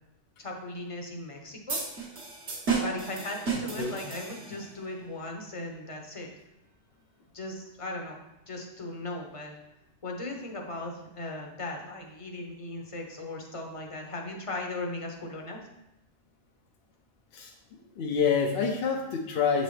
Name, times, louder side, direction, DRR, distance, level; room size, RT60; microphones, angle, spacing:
voice 1, 0.4-1.8 2.8-6.3 7.3-8.2 8.5-9.6 10.0-15.6, left 2 dB, 30° left, 1 dB, 0.8 m, -38 dB
sound 1, 1.7-4.8, right 4 dB, 70° right, 1.5 m, -33 dB
voice 2, 18.0-19.6, left 6 dB, 65° left, 1 dB, 0.8 m, -27 dB
7.7 x 4.0 x 3.2 m, 0.92 s
omnidirectional pair, 1.2 m